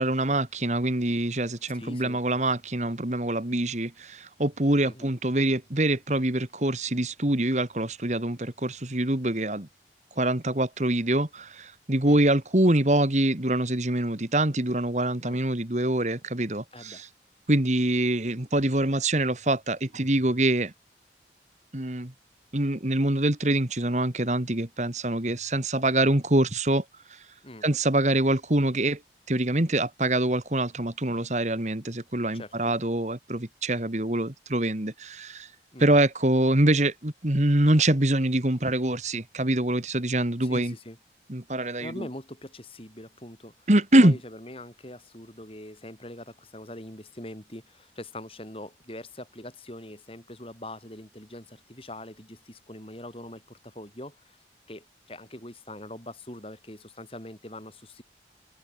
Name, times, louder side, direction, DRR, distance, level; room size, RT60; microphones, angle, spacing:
voice 1, 0.0-9.7 10.2-17.1 17.5-20.7 21.7-22.1 22.5-26.8 27.1-27.2 27.6-29.0 29.3-35.5 35.8-40.7 41.3-42.1 43.7-44.2, right 1 dB, 40° right, 2.0 m, -25 dB
voice 2, 1.7-2.2 4.8-5.1 12.0-12.2 15.2-15.4 16.7-17.0 27.4-27.7 32.3-32.7 35.7-36.0 40.4-41.0 41.8-43.7 44.0-54.4 54.7-58.0, left 1 dB, 30° left, 6.2 m, -43 dB
open air
head